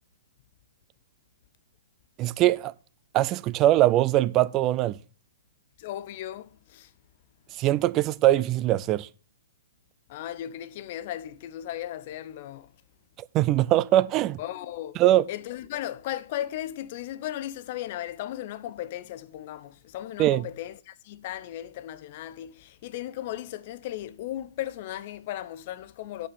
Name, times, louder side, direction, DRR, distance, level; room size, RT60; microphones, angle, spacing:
voice 1, 2.2-2.7 3.1-5.0 7.6-9.1 13.3-14.4 15.0-15.3 20.2-20.5, right 14 dB, 30° right, 0.4 m, -22 dB
voice 2, 5.8-6.9 10.1-12.7 14.4-15.0 15.3-26.3, left 12 dB, 50° left, 0.7 m, -36 dB
8.8 x 6.8 x 5.3 m
hypercardioid pair, 135°, 0 cm